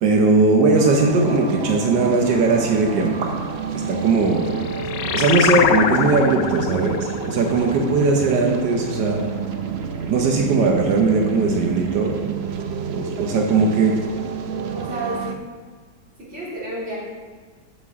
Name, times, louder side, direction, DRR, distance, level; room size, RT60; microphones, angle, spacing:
voice 1, 0.0-3.3 3.9-4.5 5.1-9.2 10.1-12.2 12.9-13.9, right 3 dB, 90° right, 1 dB, 1.6 m, -19 dB
sound 1, 0.7-15.3, right 6 dB, 65° right, 0.6 m, -29 dB
sound 2, 4.1-9.1, left 8 dB, 90° left, 1.3 m, -25 dB
voice 2, 7.4-7.8 14.7-15.5 16.2-17.0, right 1 dB, 35° right, -8 dB, 3.3 m, -31 dB
14.5 x 6.4 x 3.7 m, 1.5 s
omnidirectional pair, 1.8 m